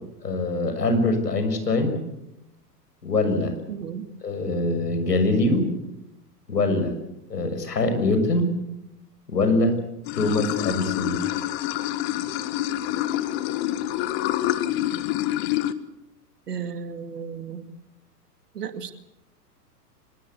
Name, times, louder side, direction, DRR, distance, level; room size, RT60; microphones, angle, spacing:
voice 1, 0.2-1.9 3.0-3.5 4.2-5.7 6.5-6.9 7.3-8.5 9.3-9.7 10.1-11.2, left 2 dB, 75° left, 7 dB, 6.5 m, -23 dB
voice 2, 3.7-4.0 16.5-17.7 18.5-18.9, right 7 dB, 70° right, 10 dB, 2.4 m, -34 dB
Water / Sink (filling or washing), 10.1-15.7, left 14 dB, 40° left, 1.6 m, -27 dB
25.5 x 22.0 x 8.3 m, 0.86 s
figure-of-eight pair, 105°, 48 cm